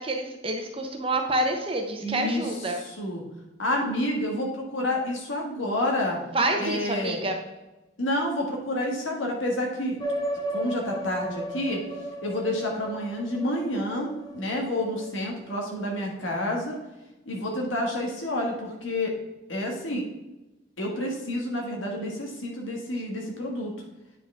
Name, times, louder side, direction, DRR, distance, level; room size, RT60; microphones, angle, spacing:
voice 1, 0.0-2.8 6.3-7.4, right 2 dB, 30° right, 3 dB, 0.9 m, -27 dB
voice 2, 2.0-3.2 3.6-6.2 6.6-7.2 8.0-10.0 10.5-11.8 12.2-16.8 17.2-19.1 19.5-20.0 20.8-23.7, left 1 dB, 85° left, 0 dB, 1.8 m, -29 dB
sound 1, 10.0-16.0, right 1 dB, 20° left, 0.7 m, -35 dB
9.2 x 5.0 x 3.5 m, 1.0 s
head